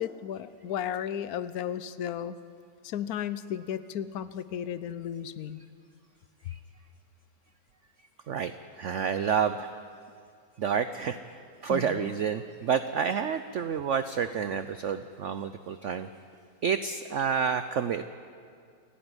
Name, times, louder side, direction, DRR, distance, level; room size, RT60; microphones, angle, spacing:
voice 1, 0.0-2.4 2.8-5.6 11.7-12.1, left 9 dB, 65° left, 14 dB, 1.0 m, -34 dB
voice 2, 8.8-9.7 10.6-16.1 16.6-18.0, right 7 dB, 85° right, 11 dB, 0.6 m, -29 dB
28.5 x 10.0 x 9.7 m, 2.2 s
omnidirectional pair, 2.0 m